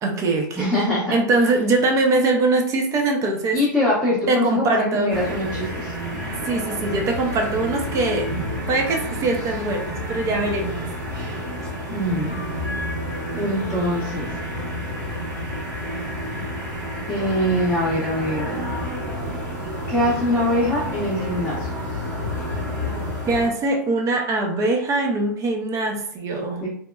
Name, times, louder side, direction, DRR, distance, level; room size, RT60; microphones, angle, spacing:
voice 1, 0.0-0.7 1.1-3.6 4.3-5.2 6.4-8.3 8.7-10.9 23.3-26.6, right 2 dB, 30° right, 3 dB, 0.5 m, -22 dB
voice 2, 0.5-1.1 3.5-5.9 11.9-12.3 13.3-14.3 17.1-18.6 19.9-21.7 26.6-26.7, left 1 dB, 10° left, -9 dB, 0.8 m, -23 dB
sound 1, 5.1-23.5, equal, 85° right, 1.4 m, -29 dB
2.9 x 2.1 x 2.2 m, 0.66 s
hypercardioid pair, 115°, 11 cm